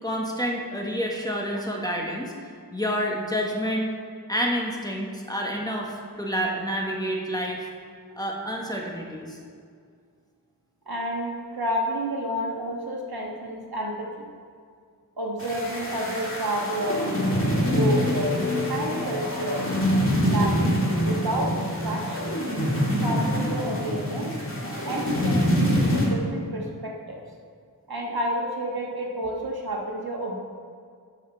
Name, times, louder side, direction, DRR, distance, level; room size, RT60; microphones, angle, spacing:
voice 1, 0.0-2.3 2.7-3.9 4.3-7.7 8.2-9.4, equal, 10° left, -1 dB, 1.3 m, -28 dB
voice 2, 10.9-14.1 15.2-17.1 17.7-19.7 20.3-20.8 21.0-22.3 22.9-24.3 24.8-27.2 27.9-30.4, right 1 dB, 75° right, -1 dB, 1.4 m, -30 dB
sound 1, 15.4-26.1, equal, 35° left, 2.0 m, -25 dB
11.5 x 5.4 x 4.5 m, 2.2 s
wide cardioid pair, 60°, 37 cm